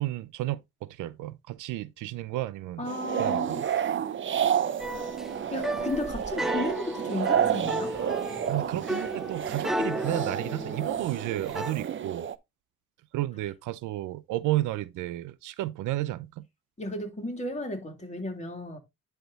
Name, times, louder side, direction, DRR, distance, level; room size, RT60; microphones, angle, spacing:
voice 1, 0.0-2.8 3.2-3.6 8.5-12.3 13.1-16.4, right 16 dB, 90° right, 0.6 m, -32 dB
voice 2, 2.8-3.9 4.9-5.1 5.5-7.9 16.8-18.8, left 2 dB, 25° left, 2.9 m, -34 dB
sound 1, 2.9-12.4, right 9 dB, 40° right, 0.6 m, -30 dB
sound 2, 4.8-11.7, equal, ahead, 0.4 m, -34 dB
10.5 x 3.5 x 4.0 m
cardioid pair, 90°, 30 cm